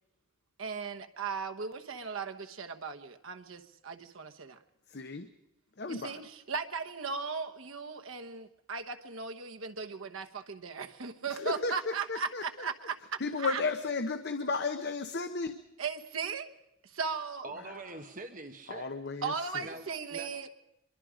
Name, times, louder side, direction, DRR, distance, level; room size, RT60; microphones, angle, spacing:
voice 1, 0.6-4.6 5.9-13.6 15.8-16.5 16.9-17.5 19.2-20.5, right 5 dB, 85° right, 7 dB, 1.1 m, -37 dB
voice 2, 4.9-5.3 5.8-6.2 11.3-12.7 13.2-15.6 18.7-19.7, left 4 dB, 55° left, 8 dB, 0.9 m, -34 dB
voice 3, 17.4-18.9 19.6-20.3, right 2 dB, 40° right, 6 dB, 1.2 m, -44 dB
24.5 x 23.0 x 5.1 m, 0.83 s
head